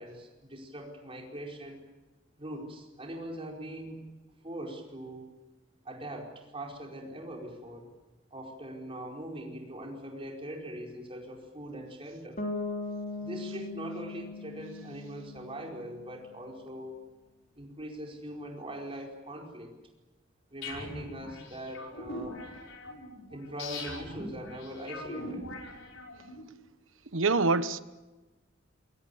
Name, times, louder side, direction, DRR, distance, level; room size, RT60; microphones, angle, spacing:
voice 1, 0.0-1.8 2.4-4.0 4.4-5.3 5.8-7.9 8.3-12.4 13.2-17.0 17.5-19.7 20.5-22.4 23.3-25.4, right 1 dB, 30° right, 4.9 m, -41 dB
Bass guitar, 12.4-16.2, left 2 dB, 40° left, 3.2 m, -39 dB
sound 1, 20.6-26.4, left 2 dB, 80° left, 5.7 m, -42 dB
voice 2, 27.1-27.8, right 3 dB, 75° right, 1.0 m, -25 dB
28.0 x 23.0 x 7.1 m
head